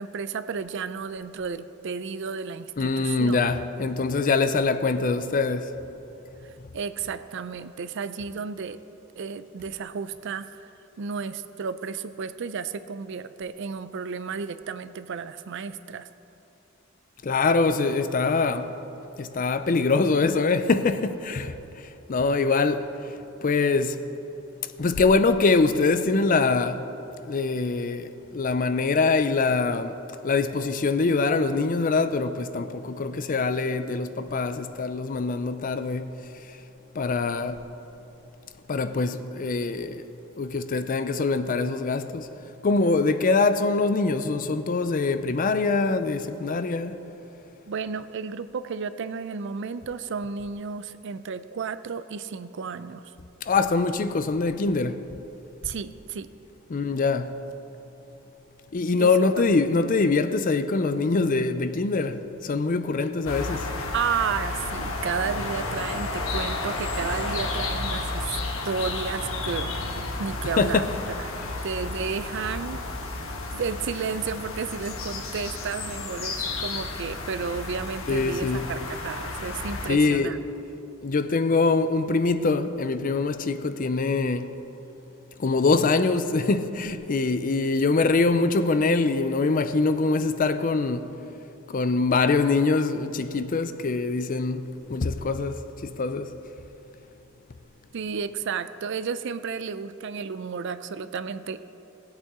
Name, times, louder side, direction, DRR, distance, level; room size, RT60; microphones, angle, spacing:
voice 1, 0.0-3.4 6.7-8.8 9.2-10.6 11.0-16.1 47.7-53.1 55.6-56.3 59.0-59.1 63.9-68.4 68.6-70.8 71.2-71.4 71.6-72.8 73.5-80.4 97.9-101.6, right 5 dB, 60° right, 0.4 m, -32 dB
voice 2, 2.8-5.7 17.2-18.7 19.2-22.9 23.4-24.0 24.8-26.9 27.2-30.0 30.2-36.2 36.9-37.6 38.7-40.0 40.4-42.3 42.6-47.0 53.5-55.0 56.7-57.4 58.7-63.7 70.6-70.9 78.1-78.7 79.9-80.4 81.0-84.5 85.4-91.1 91.7-96.4, left 3 dB, 40° left, 0.5 m, -24 dB
sound 1, 63.2-79.9, left 2 dB, 85° left, 1.3 m, -32 dB
19.0 x 8.3 x 3.7 m
head